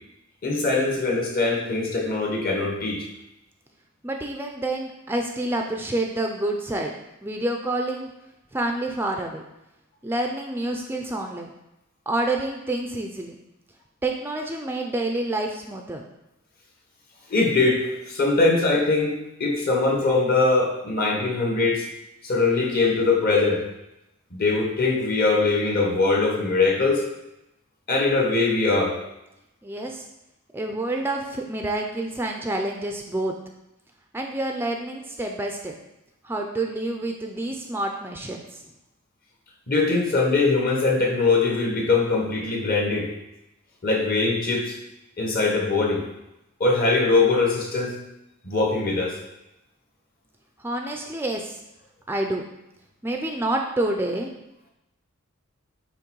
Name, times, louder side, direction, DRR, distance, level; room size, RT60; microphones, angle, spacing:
voice 1, 0.4-3.0 17.3-21.8 22.2-23.6 24.3-27.0 27.9-28.9 39.7-43.1 43.8-44.7 45.2-46.0 46.6-47.9 48.4-49.2, left 3 dB, 45° left, 0 dB, 1.3 m, -22 dB
voice 2, 4.0-6.9 7.2-8.1 8.5-9.4 10.0-11.5 12.1-13.4 14.0-16.0 29.6-30.0 30.5-33.3 34.1-35.7 36.2-38.6 50.6-51.6 52.1-52.4 53.0-54.3, right 2 dB, 10° right, 2 dB, 0.5 m, -28 dB
8.7 x 3.1 x 4.6 m, 0.89 s
head